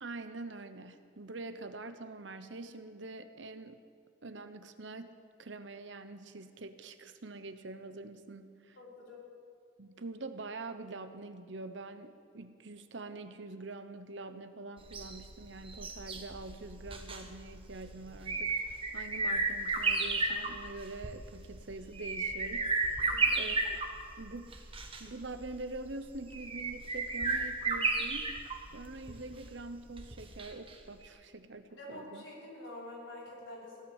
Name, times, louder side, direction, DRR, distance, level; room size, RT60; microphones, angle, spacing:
voice 1, 0.0-3.8 4.2-5.1 5.4-8.8 9.8-22.7 23.0-23.6 24.2-24.6 25.0-28.3 28.7-32.2, right 2 dB, 70° right, 10 dB, 1.0 m, -45 dB
voice 2, 8.7-9.2 23.0-23.4 31.7-33.8, left 1 dB, 75° left, -5 dB, 5.4 m, -47 dB
sound 1, 14.8-30.7 31.0-31.1, right 3 dB, 30° right, 1.3 m, -34 dB
16.5 x 11.5 x 7.3 m, 2.1 s
head